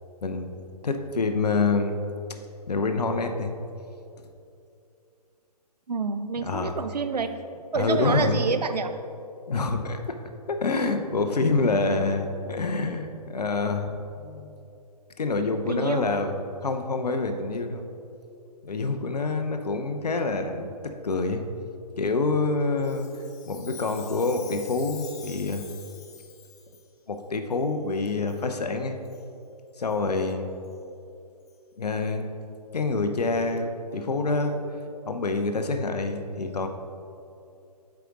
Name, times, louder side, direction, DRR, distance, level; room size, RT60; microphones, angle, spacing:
voice 1, 0.2-0.5 0.8-2.0 2.7-3.5 6.4-6.7 7.7-8.4 9.5-10.2 10.5-14.6 15.2-16.4 16.6-17.9 18.6-21.4 22.0-23.1 23.4-25.7 27.1-29.0 29.8-30.5 31.8-32.3 32.7-34.6 35.0-36.7, left 3 dB, 70° left, 6 dB, 0.7 m, -27 dB
voice 2, 5.9-7.3 7.7-8.9 15.7-16.0, right 5 dB, 75° right, 9 dB, 0.5 m, -27 dB
Chime, 22.8-26.9 27.5-27.6 28.3-28.5 29.0-29.2 29.9-30.0 30.6-30.7 31.5-31.6, left 7 dB, 25° left, 0.5 m, -46 dB
7.7 x 4.8 x 3.8 m, 2.6 s
figure-of-eight pair, 135°, 21 cm